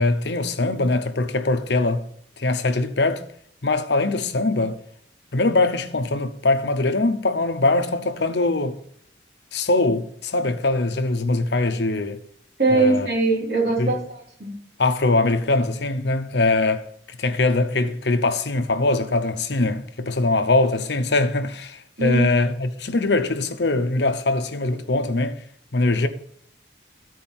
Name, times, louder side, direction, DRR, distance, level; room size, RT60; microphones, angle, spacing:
voice 1, 0.0-2.0 2.4-3.2 3.6-4.8 5.3-8.8 9.5-12.2 12.7-13.1 13.8-14.0 14.8-25.4 25.7-26.1, left 2 dB, 65° left, 0.9 m, -22 dB
voice 2, 12.6-14.5 22.0-22.3, right 3 dB, 55° right, 3.7 m, -21 dB
13.0 x 4.8 x 6.0 m
head